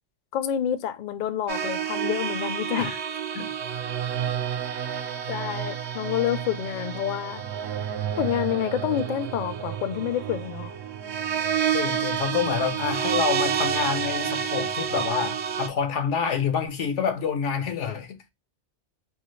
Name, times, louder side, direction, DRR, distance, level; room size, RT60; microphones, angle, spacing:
voice 1, 0.3-2.9 5.3-7.4 8.2-10.7, left 10 dB, 60° left, 0.5 m, -28 dB
sound 1, 1.5-15.7, right 8 dB, 70° right, 0.8 m, -29 dB
voice 2, 11.7-18.2, left 6 dB, 90° left, 1.1 m, -27 dB
3.9 x 2.3 x 3.0 m
omnidirectional pair, 1.2 m